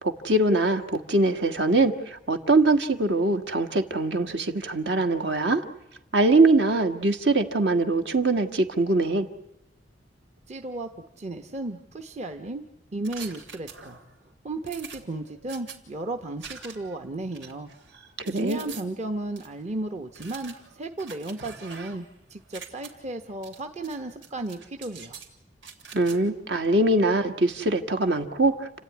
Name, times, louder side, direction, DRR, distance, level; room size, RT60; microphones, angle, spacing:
voice 1, 0.0-5.6 6.1-9.3 18.2-18.6 25.9-28.7, right 2 dB, 65° right, 6 dB, 1.7 m, -22 dB
voice 2, 10.5-10.9 11.2-12.6 12.9-14.0 14.4-17.7 18.3-25.2, right 2 dB, 35° right, 5 dB, 1.0 m, -34 dB
sound 1, 13.0-14.1 14.7-15.8 16.4-17.0 17.3-18.8 19.4-19.5 20.1-22.1 22.4-22.9 23.4-24.0 24.2-25.3 25.6-26.2, right 6 dB, 80° right, 3.5 m, -44 dB
29.5 x 13.5 x 9.6 m, 0.94 s
head